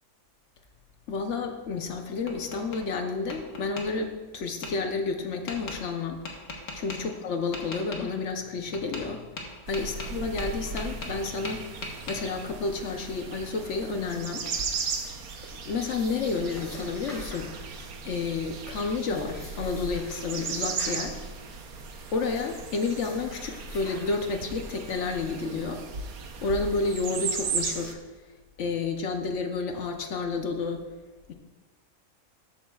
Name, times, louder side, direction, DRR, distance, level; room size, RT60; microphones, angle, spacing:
voice 1, 1.1-6.2 6.7-9.3 9.7-14.5 15.6-17.5 18.0-21.2 22.1-25.8 26.4-28.0 28.6-30.9 31.3-31.4, left 4 dB, 60° left, 5 dB, 1.0 m, -30 dB
Tap, 1.8-2.8 3.3-3.9 4.6-4.7 5.5-5.8 6.2-7.0 7.5-8.0 8.7-9.1 9.4-11.2 11.4-12.2, left 3 dB, 85° left, 1.7 m, -38 dB
sound 1, 9.7-27.9, right 5 dB, 80° right, 1.3 m, -36 dB
sound 2, 14.0-24.7, left 1 dB, 30° left, 2.8 m, -49 dB
13.0 x 8.5 x 2.3 m, 1.3 s
omnidirectional pair, 1.5 m